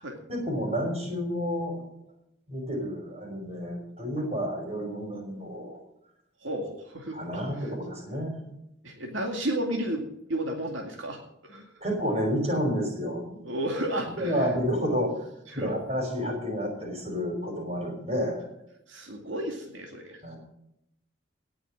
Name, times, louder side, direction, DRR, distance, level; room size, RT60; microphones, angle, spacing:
voice 1, 0.3-1.8 2.5-5.7 7.1-8.4 11.8-13.4 14.2-15.3 15.6-18.5 20.2-20.4, equal, 30° right, 1 dB, 5.1 m, -30 dB
voice 2, 6.4-7.7 8.8-10.0 10.3-11.6 13.4-14.5 15.5-15.8 18.9-20.3, right 1 dB, 75° right, 1 dB, 2.3 m, -33 dB
18.0 x 6.3 x 7.6 m, 0.79 s
head